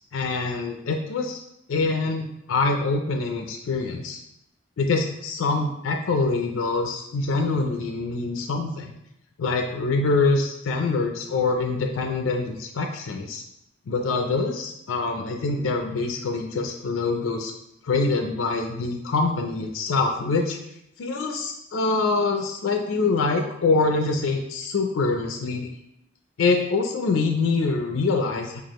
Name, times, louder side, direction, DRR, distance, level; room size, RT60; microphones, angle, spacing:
voice 1, 0.1-1.4 1.7-4.2 4.8-8.9 9.4-13.4 13.9-17.5 17.8-20.6 21.0-25.7 26.4-28.6, left 3 dB, 85° left, 3 dB, 0.4 m, -25 dB
4.6 x 2.4 x 3.0 m, 0.80 s
head